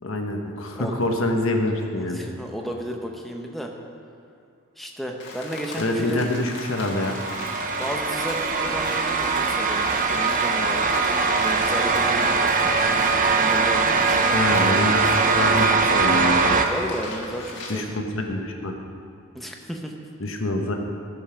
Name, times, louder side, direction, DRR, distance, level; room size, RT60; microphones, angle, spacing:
voice 1, 0.0-2.2 5.8-7.2 14.3-16.6 17.7-18.7 20.2-20.7, left 1 dB, 70° left, 3 dB, 1.1 m, -25 dB
voice 2, 2.0-3.7 4.8-6.2 7.8-10.9 11.4-12.5 13.4-14.2 16.7-17.8 19.3-19.9, equal, ahead, 1 dB, 0.7 m, -33 dB
Rain, 5.2-17.8, left 2 dB, 55° left, 1.6 m, -38 dB
sound 1, 6.6-16.7, right 4 dB, 40° right, 0.6 m, -21 dB
14.5 x 5.5 x 5.8 m, 2.3 s
head